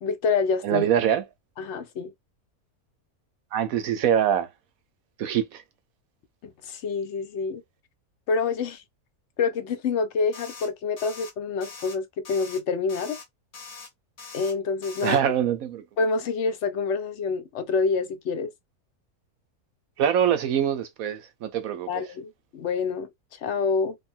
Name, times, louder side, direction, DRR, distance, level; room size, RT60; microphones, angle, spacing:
voice 1, 0.0-0.9 1.6-2.1 6.4-7.6 8.3-8.8 9.4-13.2 14.3-15.2 16.0-18.5 21.9-24.0, left 4 dB, 55° left, 1.0 m, -27 dB
voice 2, 0.6-1.2 3.5-4.5 5.2-5.6 15.0-15.8 20.0-21.9, right 9 dB, 70° right, 1.1 m, -24 dB
sound 1, 10.3-10.7 11.0-11.3 11.6-12.0 12.2-12.6 12.9-13.3 13.5-13.9 14.2-14.5 14.8-15.2, left 5 dB, 85° left, 1.7 m, -42 dB
3.3 x 2.3 x 4.3 m
omnidirectional pair, 1.6 m